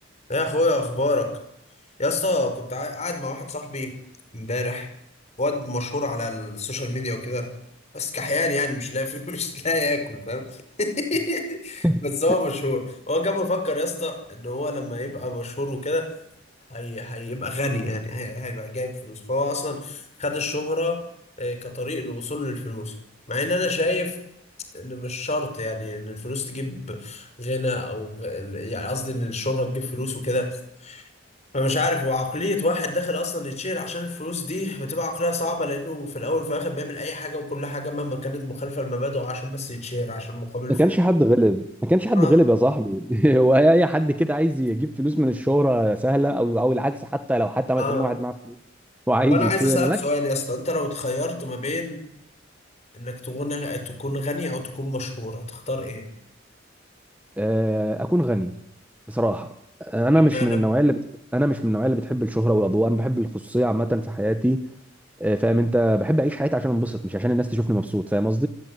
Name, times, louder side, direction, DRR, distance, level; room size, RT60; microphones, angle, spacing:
voice 1, 0.3-1.3 2.0-4.0 4.3-4.9 5.4-7.5 7.9-16.1 16.7-21.0 21.4-22.9 23.3-24.2 24.7-31.0 31.5-40.8 42.1-42.4 47.8-48.1 49.3-52.0 52.9-56.1 60.3-60.6, left 2 dB, 35° left, 7 dB, 5.5 m, -27 dB
voice 2, 40.7-48.5 49.1-50.0 57.4-58.5 59.1-59.5 59.8-61.0 61.3-64.7 65.2-68.5, equal, 10° right, 9 dB, 1.1 m, -21 dB
28.5 x 17.0 x 9.5 m, 0.78 s
head